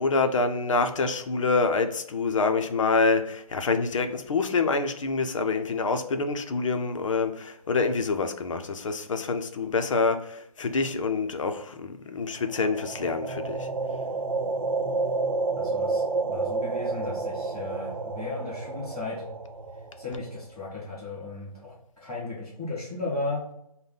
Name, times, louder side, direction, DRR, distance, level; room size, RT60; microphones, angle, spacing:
voice 1, 0.0-13.7, left 4 dB, 55° left, 0.6 m, -26 dB
sound 1, 12.4-20.4, right 3 dB, 65° right, 0.6 m, -30 dB
voice 2, 15.6-19.2 20.0-23.4, left 3 dB, ahead, 0.8 m, -35 dB
5.1 x 2.1 x 3.9 m
hypercardioid pair, 170°, 20 cm